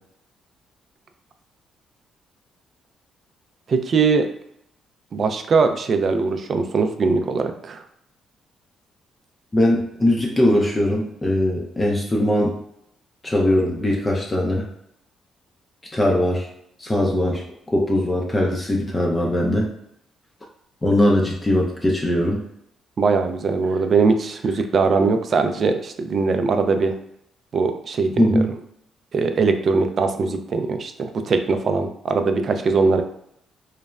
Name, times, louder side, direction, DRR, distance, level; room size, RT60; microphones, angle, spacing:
voice 1, 3.7-4.3 5.1-7.8 23.0-26.9 27.5-28.6 29.1-33.0, right 4 dB, 50° right, 7 dB, 0.3 m, -21 dB
voice 2, 9.5-12.6 13.2-14.7 15.9-16.5 16.8-17.4 17.7-19.7 20.8-22.4 28.2-28.5, left 1 dB, 20° left, -1 dB, 0.4 m, -20 dB
3.1 x 2.0 x 2.3 m, 0.73 s
cardioid pair, 90°, 0 cm